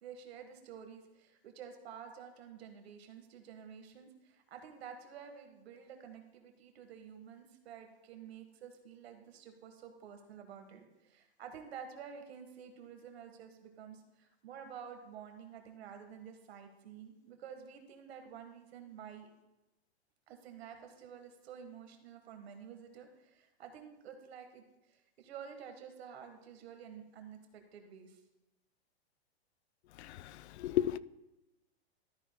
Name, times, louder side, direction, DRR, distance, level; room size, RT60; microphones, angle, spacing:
voice 1, 0.0-19.3 20.3-28.2, right 7 dB, 70° right, 1.5 m, -50 dB
voice 2, 29.9-31.0, left 12 dB, 90° left, 0.5 m, -34 dB
13.0 x 9.1 x 2.2 m
supercardioid pair, 155°, 32 cm